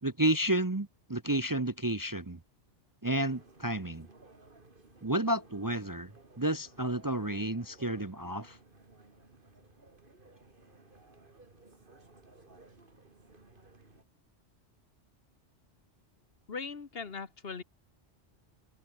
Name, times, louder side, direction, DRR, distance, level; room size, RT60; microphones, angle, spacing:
voice 1, 0.0-2.4 3.0-4.1 5.0-6.1 6.4-8.6, right 1 dB, 20° right, 0.9 m, -31 dB
sound 1, 3.0-14.0, right 3 dB, 45° right, 2.9 m, -58 dB
voice 2, 16.5-17.6, left 5 dB, 55° left, 1.6 m, -39 dB
omnidirectional pair, 1.2 m